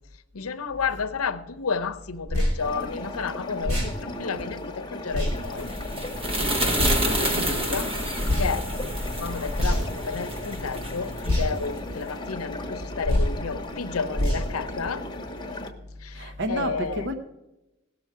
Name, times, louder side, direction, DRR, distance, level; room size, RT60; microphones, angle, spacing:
voice 1, 0.3-5.7 6.4-6.5 6.8-8.0 8.4-8.7 9.2-15.0 16.0-17.1, left 5 dB, 80° left, 0.7 m, -31 dB
sound 1, 2.3-2.5 3.6-3.9 5.1-5.3 6.8-7.0 8.2-8.5 9.5-10.0 11.2-11.5 13.0-13.3 14.1-14.4, left 1 dB, 90° right, 3.3 m, -23 dB
sound 2, 2.6-15.7, left 2 dB, 20° left, 1.0 m, -37 dB
sound 3, 5.3-11.9, right 1 dB, 25° right, 1.0 m, -29 dB
voice 2, 16.1-17.1, right 1 dB, 55° right, 0.9 m, -30 dB
17.5 x 6.3 x 4.7 m
head